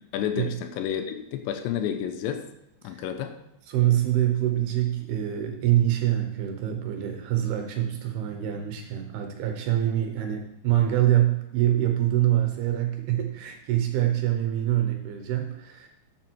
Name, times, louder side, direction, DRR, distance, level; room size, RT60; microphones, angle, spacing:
voice 1, 0.1-2.5 2.8-3.3, left 9 dB, 80° left, 7 dB, 3.0 m, -30 dB
voice 2, 3.7-15.9, right 12 dB, 75° right, 4 dB, 2.6 m, -25 dB
13.0 x 7.1 x 4.5 m, 0.87 s
omnidirectional pair, 5.2 m